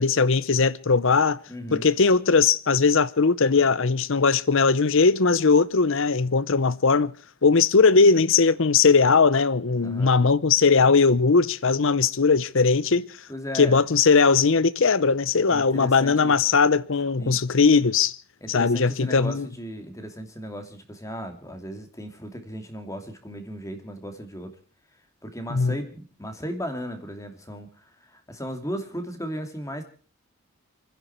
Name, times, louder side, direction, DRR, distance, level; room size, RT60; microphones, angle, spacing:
voice 1, 0.0-1.4 1.7-7.1 7.4-13.1 13.5-18.1 18.5-19.5 25.5-25.7, left 4 dB, 60° left, 0.7 m, -19 dB
voice 2, 1.5-1.9 9.8-10.1 13.3-13.8 15.5-16.4 17.2-17.5 18.4-24.6 25.2-29.8, equal, 15° left, 2.6 m, -36 dB
29.5 x 10.5 x 4.4 m
head